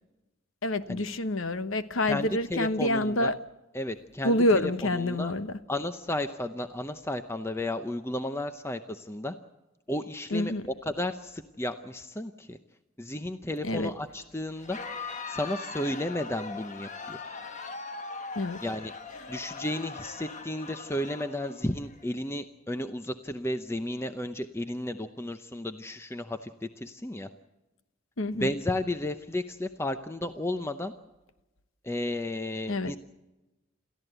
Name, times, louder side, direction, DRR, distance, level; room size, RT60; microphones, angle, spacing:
voice 1, 0.6-3.4 4.2-5.6 10.3-10.6 13.6-13.9 18.3-18.6 28.2-28.5 32.7-32.9, left 1 dB, 70° left, 1.1 m, -27 dB
voice 2, 2.1-3.3 3.7-5.3 5.7-9.3 9.9-10.5 10.9-12.6 13.0-14.8 15.3-17.2 18.6-18.9 19.3-27.3 28.3-30.9 31.8-33.0, left 1 dB, 10° left, 0.7 m, -33 dB
Crowd, 14.5-22.0, left 4 dB, 35° left, 1.3 m, -40 dB
28.5 x 14.0 x 8.0 m
head